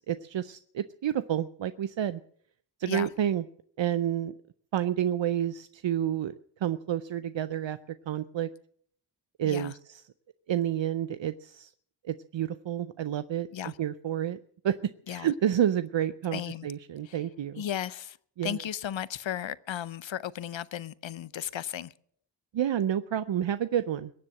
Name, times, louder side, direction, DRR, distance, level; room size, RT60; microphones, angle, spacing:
voice 1, 0.0-2.2 2.8-3.4 3.8-4.3 4.7-6.3 6.6-8.5 9.4-10.0 10.5-11.7 12.0-14.4 14.6-17.6 18.4-18.6 22.5-24.1, right 10 dB, 75° right, 0.6 m, -29 dB
voice 2, 9.4-9.7 13.5-13.8 15.1-15.3 16.3-16.7 17.0-17.2 17.6-18.2 18.4-21.9, left 10 dB, 80° left, 0.7 m, -35 dB
21.5 x 7.6 x 7.7 m
cardioid pair, 45°, 45 cm